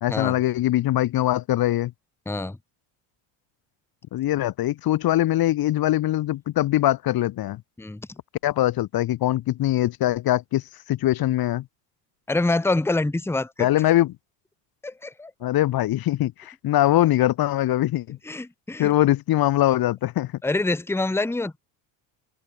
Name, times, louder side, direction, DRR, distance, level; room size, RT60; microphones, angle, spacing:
voice 1, 0.0-1.9 4.1-7.6 8.4-10.6 10.9-11.6 13.6-14.1 15.4-18.2 18.8-20.3, left 14 dB, 50° left, 1.1 m, -22 dB
voice 2, 2.3-2.6 7.8-8.0 12.3-13.7 14.8-15.5 18.2-18.9 20.4-21.6, left 2 dB, 5° left, 1.1 m, -26 dB
supercardioid pair, 90°, 47 cm